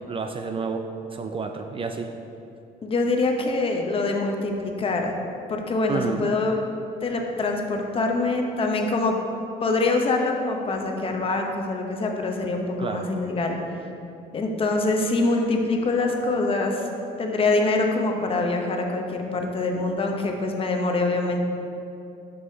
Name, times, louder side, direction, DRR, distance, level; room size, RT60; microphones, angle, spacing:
voice 1, 0.1-2.1 5.9-6.3 12.8-13.1, right 5 dB, 30° right, 5 dB, 0.4 m, -30 dB
voice 2, 2.8-5.1 5.5-6.6 7.0-9.2 9.6-13.6 14.3-16.9 17.2-21.4, left 3 dB, 35° left, 2 dB, 0.8 m, -24 dB
9.5 x 5.5 x 2.8 m, 2.7 s
cardioid pair, 110°, 17 cm